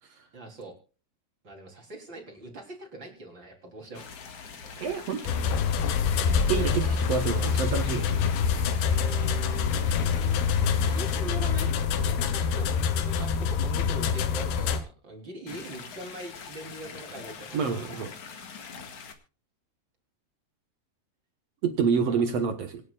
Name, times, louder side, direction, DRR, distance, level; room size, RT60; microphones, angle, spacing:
voice 1, 0.3-0.7 1.4-4.1 6.6-6.9 8.7-9.9 10.9-18.1 21.9-22.2, right 1 dB, 30° right, 2 dB, 4.0 m, -42 dB
sound 1, 3.9-11.2 15.5-19.1, left 6 dB, 50° left, 2.4 m, -44 dB
voice 2, 4.8-5.4 6.5-8.2 17.5-18.1 21.6-22.8, right 6 dB, 60° right, 7 dB, 1.7 m, -27 dB
sound 2, 5.3-14.8, left 6 dB, 85° left, 3.3 m, -26 dB
26.5 x 9.5 x 2.4 m, 0.36 s
omnidirectional pair, 4.5 m